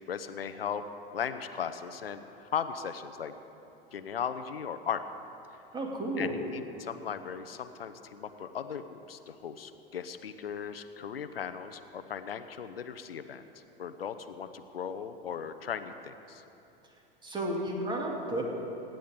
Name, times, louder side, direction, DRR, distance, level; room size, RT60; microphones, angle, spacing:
voice 1, 0.1-0.8 1.1-3.3 3.9-5.0 6.2-13.4 13.8-16.4, left 7 dB, 80° left, 10 dB, 0.7 m, -37 dB
voice 2, 5.7-6.4 17.2-18.4, right 1 dB, 15° right, 0 dB, 2.5 m, -32 dB
25.0 x 10.0 x 3.7 m, 2.9 s
figure-of-eight pair, 85°, 29 cm